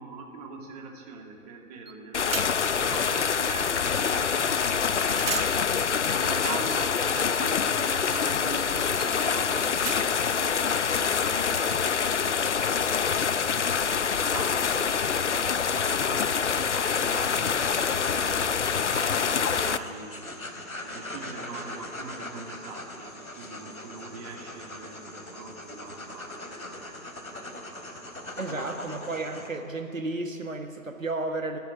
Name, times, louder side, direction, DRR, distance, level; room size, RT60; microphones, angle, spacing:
voice 1, 0.0-2.4 2.7-5.4 6.2-12.1 14.0-18.6 19.2-20.2 20.8-27.9 28.4-29.0, right 4 dB, 30° right, 1 dB, 2.7 m, -42 dB
sound 1, 1.9-2.0 2.3-2.8 4.7-4.8 5.1-10.4, right 6 dB, 45° right, 0.8 m, -39 dB
sound 2, 2.1-19.8, left 6 dB, 55° left, 0.8 m, -26 dB
voice 2, 6.0-6.4 28.4-31.6, right 2 dB, 65° right, 5 dB, 1.7 m, -33 dB
sound 3, 16.7-29.5, left 1 dB, 75° left, 3.7 m, -40 dB
28.0 x 10.5 x 9.9 m, 2.9 s
figure-of-eight pair, 140°, 42 cm